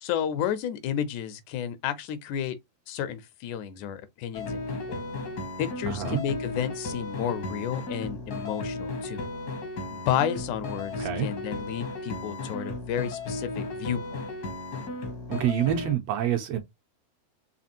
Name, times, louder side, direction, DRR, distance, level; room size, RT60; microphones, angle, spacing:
voice 1, 0.0-2.6 2.9-4.6 4.9-5.0 5.6-9.3 9.9-14.2, left 9 dB, 90° left, 2.1 m, -31 dB
sound 1, 4.3-15.9, left 2 dB, 75° left, 0.9 m, -35 dB
voice 2, 5.9-6.2 11.0-11.3 15.3-16.6, right 10 dB, 80° right, 1.6 m, -27 dB
5.0 x 2.9 x 2.7 m
omnidirectional pair, 3.4 m